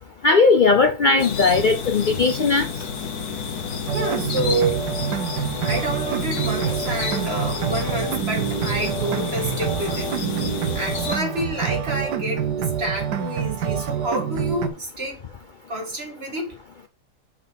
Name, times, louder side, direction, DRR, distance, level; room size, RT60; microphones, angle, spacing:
voice 1, 0.2-2.7, left 4 dB, 85° left, 0.4 m, -17 dB
sound 1, 1.2-11.2, left 5 dB, 70° left, 1.6 m, -30 dB
voice 2, 3.9-4.9 5.6-15.2 15.7-16.5, right 1 dB, 35° right, 2.6 m, -28 dB
sound 2, 3.9-14.7, right 8 dB, 85° right, 1.5 m, -27 dB
6.5 x 5.8 x 4.0 m
omnidirectional pair, 1.8 m